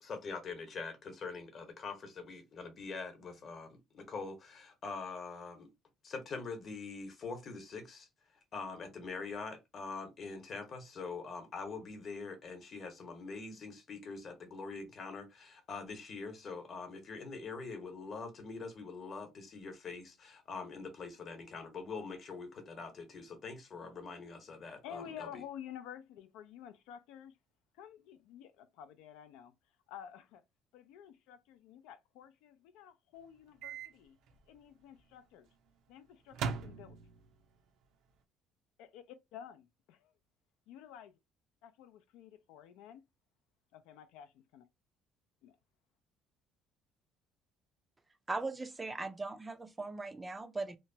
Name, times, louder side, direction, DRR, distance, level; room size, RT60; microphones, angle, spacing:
voice 1, 0.0-5.7 6.0-8.1 8.5-25.3, left 4 dB, 40° left, 0.9 m, -44 dB
voice 2, 24.8-27.4 27.7-29.5 29.9-30.4 30.7-34.2 34.5-35.5 35.9-37.0 38.8-40.1 40.7-41.1 41.6-43.0 43.7-44.6 45.4-45.6, left 9 dB, 90° left, 0.4 m, -51 dB
Microwave oven, 33.6-33.9 34.3-34.4 36.3-37.3, right 6 dB, 70° right, 0.5 m, -39 dB
voice 3, 48.3-50.8, right 3 dB, 15° right, 0.3 m, -39 dB
2.9 x 2.2 x 2.6 m
cardioid pair, 135°, 0 cm